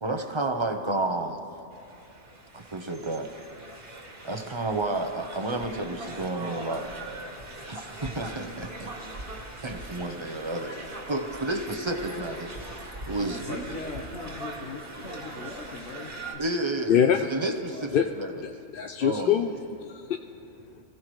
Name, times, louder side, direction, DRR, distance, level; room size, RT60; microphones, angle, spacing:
voice 1, 0.0-1.4 2.5-3.3 4.2-6.9 7.7-8.9 9.3-13.4 16.4-17.0 17.3-18.3 19.0-19.4, right 2 dB, 25° right, 5 dB, 0.8 m, -31 dB
sound 1, 1.7-16.4, right 2 dB, 50° right, 1.8 m, -41 dB
voice 2, 13.2-16.4 17.4-18.0, left 3 dB, 80° left, -4 dB, 1.7 m, -40 dB
voice 3, 16.9-17.2 17.9-18.1 18.4-20.8, left 9 dB, 60° left, 5 dB, 0.6 m, -25 dB
25.0 x 16.0 x 3.2 m, 2.7 s
omnidirectional pair, 1.3 m